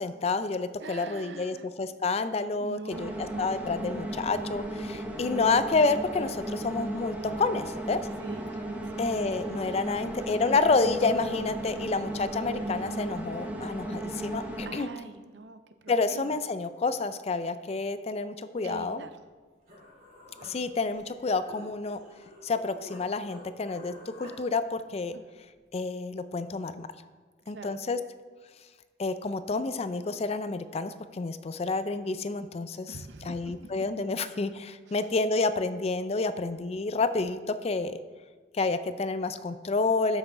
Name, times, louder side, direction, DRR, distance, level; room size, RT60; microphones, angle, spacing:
voice 1, 0.0-3.1 3.4-8.0 9.0-14.9 15.9-19.0 20.4-22.0 22.4-25.2 25.7-26.9 27.5-28.0 29.0-33.0 33.2-38.0 38.5-40.2, left 3 dB, 35° left, 12 dB, 0.4 m, -29 dB
voice 2, 0.8-1.7 2.6-3.5 8.2-8.5 8.8-9.1 9.7-10.3 14.7-16.3 18.6-19.2 25.1-25.2 27.5-27.8 32.9-33.7 34.9-35.0, right 3 dB, 70° right, 10 dB, 0.6 m, -44 dB
sound 1, 2.9-14.7, right 1 dB, 10° right, 0.9 m, -35 dB
Human voice, 19.3-19.4 19.7-23.0 23.3-24.4, left 1 dB, 50° right, 3.0 m, -50 dB
12.5 x 6.1 x 3.7 m, 1.4 s
head